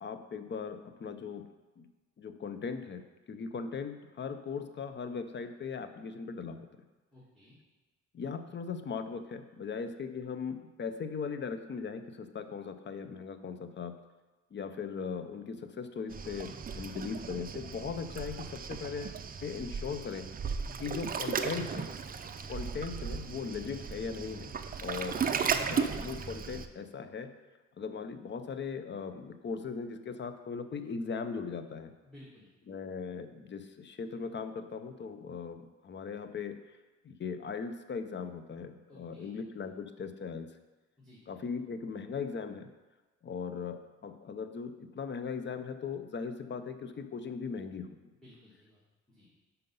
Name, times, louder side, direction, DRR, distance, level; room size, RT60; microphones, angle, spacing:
voice 1, 0.0-1.5 1.8-1.9 2.2-6.6 8.1-14.0 14.5-20.3 20.8-21.9 22.5-24.5 24.8-25.2 25.7-27.3 27.8-31.9 32.7-36.6 37.0-40.5 41.3-42.7 43.2-47.9, left 5 dB, 40° left, 10 dB, 0.6 m, -39 dB
voice 2, 7.1-7.5 20.6-20.9 32.0-32.5 38.9-39.3 41.0-41.2 48.1-48.8 49.1-49.3, left 1 dB, ahead, -8 dB, 1.9 m, -56 dB
Waves surf, 16.1-26.7, right 6 dB, 30° right, 0.5 m, -36 dB
5.7 x 5.3 x 5.4 m, 1.2 s
cardioid pair, 90°, 30 cm